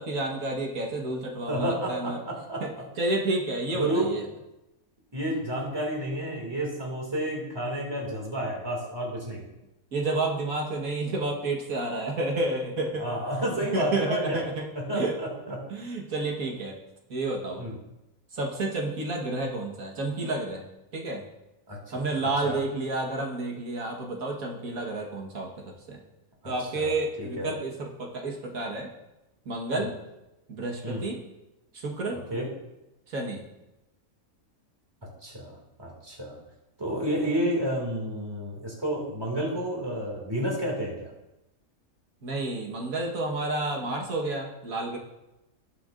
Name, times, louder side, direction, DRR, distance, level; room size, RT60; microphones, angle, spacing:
voice 1, 0.0-2.2 2.6-2.7 3.0-4.2 9.9-13.1 13.7-14.7 14.9-15.1 15.7-16.8 17.1-17.6 18.3-20.6 20.9-21.2 21.9-26.0 26.5-28.9 29.5-29.9 30.5-31.2 31.7-32.2 33.1-33.4 42.2-45.0, right 2 dB, 80° right, -1 dB, 1.9 m, -30 dB
voice 2, 1.5-2.8 3.7-4.1 5.1-9.5 13.0-14.4 14.7-15.7 17.6-17.8 21.7-22.6 26.6-27.6 29.7-29.9 30.8-31.0 32.3-32.5 35.2-36.4 36.8-41.1, right 1 dB, 15° right, -1 dB, 2.3 m, -31 dB
18.5 x 6.9 x 2.5 m, 0.96 s
omnidirectional pair, 1.5 m